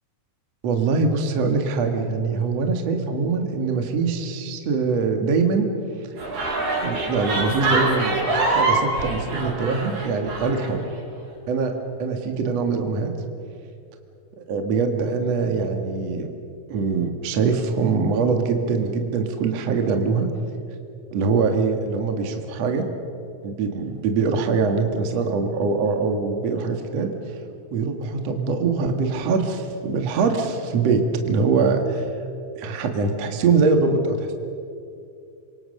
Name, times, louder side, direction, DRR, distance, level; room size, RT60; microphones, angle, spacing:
voice 1, 0.6-5.7 6.8-10.8 11.5-11.7 12.0-13.1 14.5-16.3 16.7-20.3 21.1-22.8 23.4-27.4 27.7-32.0 32.6-34.3, right 4 dB, 50° right, 5 dB, 2.6 m, -23 dB
sound 1, 6.2-10.7, right 3 dB, 85° right, 7.1 m, -24 dB
27.5 x 24.5 x 6.7 m, 2.5 s
omnidirectional pair, 4.4 m